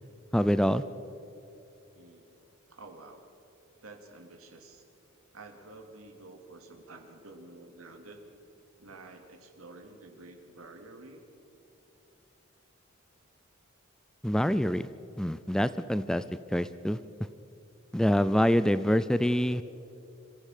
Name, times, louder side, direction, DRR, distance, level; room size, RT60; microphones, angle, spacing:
voice 1, 0.3-0.8 14.2-14.9 15.2-16.2 16.5-17.0 17.9-19.6, equal, 5° left, 14 dB, 0.4 m, -25 dB
voice 2, 1.9-2.3 2.7-3.3 3.8-4.8 5.3-8.2 8.8-11.2, right 2 dB, 90° right, 3 dB, 2.7 m, -50 dB
26.5 x 15.0 x 6.7 m, 2.9 s
head